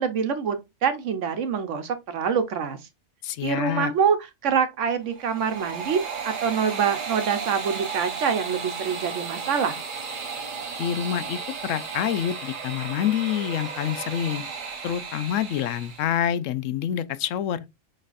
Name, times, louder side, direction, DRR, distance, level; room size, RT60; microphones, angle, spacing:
voice 1, 0.0-2.8 3.4-4.2 4.4-9.8, right 6 dB, 75° right, 1.1 m, -25 dB
voice 2, 3.2-3.9 10.8-14.4 14.8-17.6, left 10 dB, 85° left, 1.0 m, -27 dB
sound 1, 5.0-16.2, right 5 dB, 45° right, 1.0 m, -34 dB
6.5 x 3.3 x 2.4 m
omnidirectional pair, 1.3 m